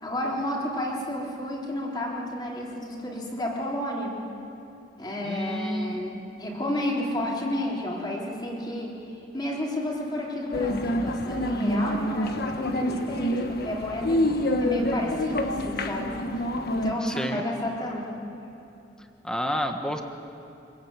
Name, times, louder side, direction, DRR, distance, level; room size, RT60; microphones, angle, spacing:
voice 1, 0.0-4.2 5.0-9.0 9.3-16.2 16.7-18.2, left 1 dB, 25° left, -3 dB, 3.8 m, -31 dB
voice 2, 5.2-5.9 17.0-17.4 19.2-20.0, equal, 5° left, 5 dB, 1.3 m, -29 dB
sound 1, 10.5-16.9, left 1 dB, 55° left, 1.3 m, -27 dB
25.0 x 15.5 x 8.9 m, 2.8 s
head